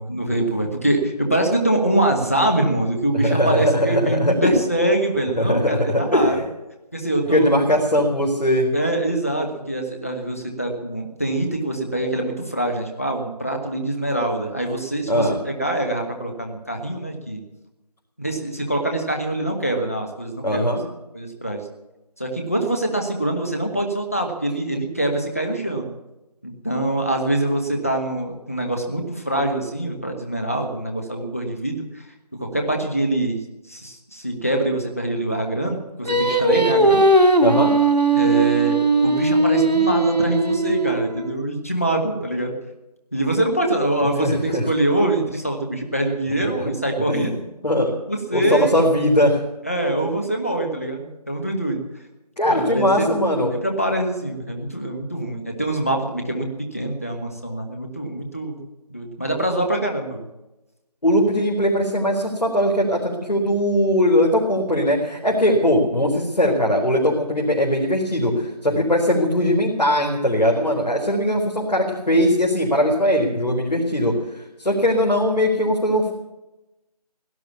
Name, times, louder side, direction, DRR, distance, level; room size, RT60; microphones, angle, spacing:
voice 1, 0.0-6.4 6.9-7.5 8.7-17.4 18.2-20.7 21.1-21.6 22.2-25.9 26.4-32.0 32.3-33.4 33.7-37.3 38.1-42.5 43.1-47.3 48.1-48.7 49.6-51.8 52.4-53.1 53.6-58.6 58.9-60.2, right 1 dB, 20° left, 3 dB, 1.3 m, -24 dB
voice 2, 3.1-4.5 5.4-6.4 7.3-8.7 15.1-15.4 20.4-20.8 37.4-37.7 44.0-44.7 47.1-47.4 47.6-47.9 48.3-49.4 52.4-53.5 61.0-76.1, equal, 80° left, -1 dB, 4.2 m, -20 dB
Singing, 36.0-41.3, right 2 dB, 80° right, 3.0 m, -18 dB
17.5 x 11.5 x 7.1 m, 0.97 s
figure-of-eight pair, 180°, 21 cm